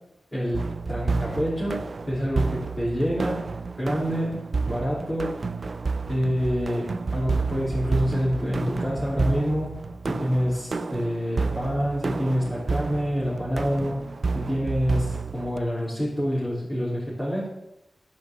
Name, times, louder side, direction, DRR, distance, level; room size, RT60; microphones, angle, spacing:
voice 1, 0.3-3.4 3.8-5.3 6.1-9.8 10.1-14.0 14.3-17.5, equal, 20° left, -8 dB, 3.3 m, -27 dB
sound 1, 0.5-15.6, right 4 dB, 55° right, 0.5 m, -30 dB
10.0 x 5.3 x 7.3 m, 0.90 s
wide cardioid pair, 80°, 0 cm